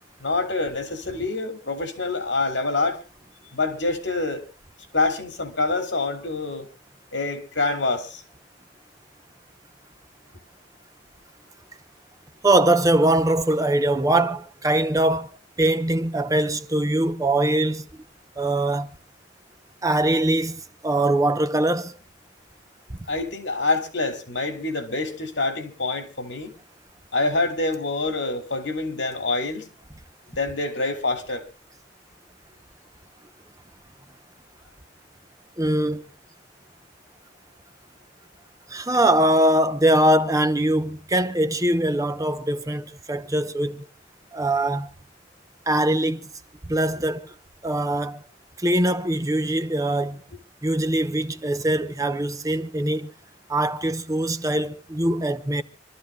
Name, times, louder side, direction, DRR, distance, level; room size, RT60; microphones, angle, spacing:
voice 1, 0.2-3.0 3.5-4.4 4.9-6.7 7.1-8.2 23.1-26.5 27.1-29.7 30.4-31.5, left 3 dB, 75° left, 2.7 m, -26 dB
voice 2, 12.4-17.8 18.4-18.9 19.8-21.9 22.9-23.0 35.6-36.0 38.7-43.9 44.3-44.9 45.7-46.3 46.7-47.3 47.6-48.2 48.6-50.2 50.6-53.1 53.5-55.6, right 1 dB, 20° right, 0.8 m, -22 dB
27.0 x 13.0 x 2.3 m
head